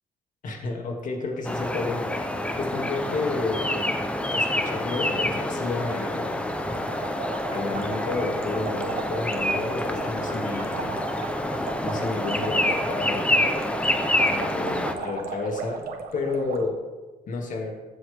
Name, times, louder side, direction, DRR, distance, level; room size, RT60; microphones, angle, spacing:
voice 1, 0.4-2.0 2.6-3.8 4.3-6.4 7.5-10.9 11.8-13.4 14.3-15.8 16.1-16.8 17.3-17.7, left 3 dB, 50° left, 1 dB, 2.7 m, -31 dB
sound 1, 1.4-14.9, left 1 dB, 5° left, 0.9 m, -27 dB
sound 2, 6.6-16.6, right 5 dB, 60° right, 1.4 m, -37 dB
15.0 x 8.0 x 3.7 m, 1.2 s
cardioid pair, 110°, 17 cm